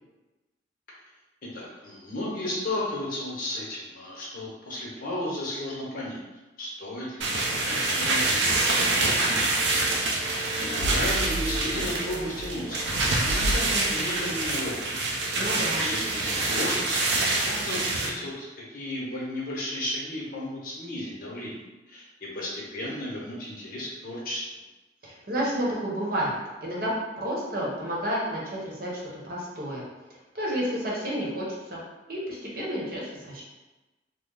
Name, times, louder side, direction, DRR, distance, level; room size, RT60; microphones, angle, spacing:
voice 1, 1.4-6.2 6.6-9.5 10.6-12.8 13.2-14.9 15.8-17.1 17.4-21.6 21.9-24.4, left 1 dB, 50° left, -5 dB, 0.9 m, -34 dB
sound 1, 7.2-18.1, right 2 dB, 80° right, 0.5 m, -26 dB
sound 2, 10.8-14.2, right 1 dB, 85° left, 0.3 m, -33 dB
voice 2, 15.3-15.9 25.0-26.3 26.6-26.9 27.2-28.9 29.2-29.8 30.3-31.5 31.7-31.8 32.1-33.4, equal, 55° right, -5 dB, 0.9 m, -30 dB
3.1 x 2.0 x 3.7 m, 1.1 s
head